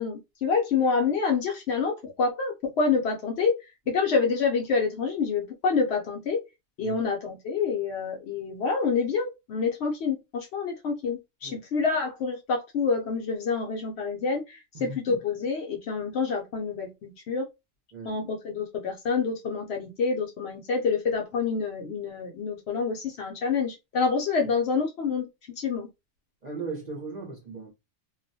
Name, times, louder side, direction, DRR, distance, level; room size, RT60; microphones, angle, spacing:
voice 1, 0.0-3.6 3.9-6.4 6.8-17.4 18.0-25.3 25.6-25.9, left 5 dB, 65° left, 0.7 m, -27 dB
voice 2, 14.7-15.2 17.9-18.2 26.4-27.7, right 4 dB, 45° right, 0.6 m, -38 dB
2.3 x 2.1 x 2.6 m
omnidirectional pair, 1.3 m